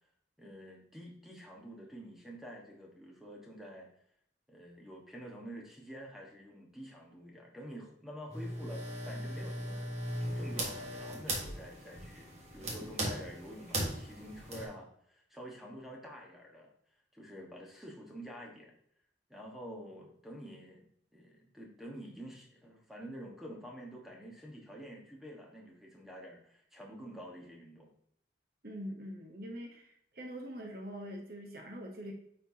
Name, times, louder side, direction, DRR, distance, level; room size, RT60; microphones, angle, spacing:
voice 1, 0.4-3.9 4.5-16.7 17.1-18.7 19.3-20.9 21.1-27.9, equal, ahead, -1 dB, 1.3 m, -48 dB
sound 1, 8.3-14.7, right 1 dB, 35° right, 1.5 m, -38 dB
voice 2, 28.6-32.1, equal, 55° right, 1 dB, 0.9 m, -44 dB
9.1 x 4.5 x 2.8 m, 0.69 s
head